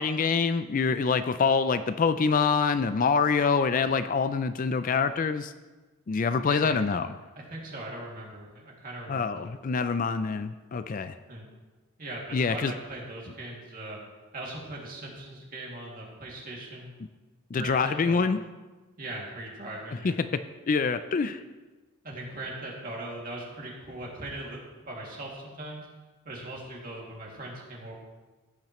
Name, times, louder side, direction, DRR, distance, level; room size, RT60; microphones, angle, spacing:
voice 1, 0.0-5.5 6.1-7.1 9.1-11.1 12.3-12.7 17.5-18.4 20.0-20.1 20.7-21.4, left 5 dB, 40° left, 11 dB, 0.3 m, -25 dB
voice 2, 6.4-6.8 7.4-9.5 11.3-11.5 12.0-14.0 14.3-16.9 17.6-18.2 19.0-20.2 22.0-25.9 26.2-27.9, right 1 dB, 40° right, -3 dB, 2.4 m, -40 dB
16.0 x 8.8 x 3.1 m, 1.2 s
head